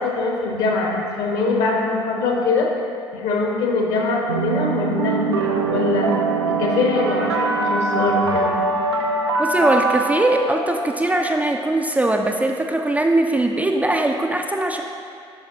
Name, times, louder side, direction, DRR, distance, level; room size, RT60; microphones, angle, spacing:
voice 1, 0.0-2.7 3.1-6.1 6.4-8.5, left 3 dB, 55° left, 0 dB, 1.1 m, -22 dB
sound 1, 4.3-11.3, right 3 dB, 75° right, 0.4 m, -23 dB
voice 2, 9.4-14.8, right 2 dB, 10° right, 2 dB, 0.4 m, -20 dB
8.7 x 5.8 x 2.8 m, 2.5 s
figure-of-eight pair, 55°, 14 cm